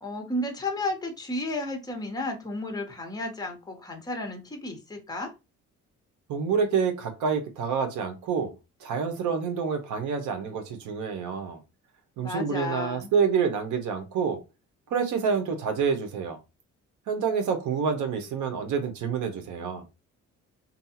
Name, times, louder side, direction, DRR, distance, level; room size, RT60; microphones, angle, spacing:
voice 1, 0.0-5.3 12.2-13.1, left 2 dB, 15° left, 0.9 m, -33 dB
voice 2, 6.3-8.5 8.8-11.6 12.2-14.4 14.9-16.4 17.1-19.8, right 6 dB, 80° right, 0.8 m, -27 dB
2.7 x 2.3 x 2.7 m
cardioid pair, 90°, 30 cm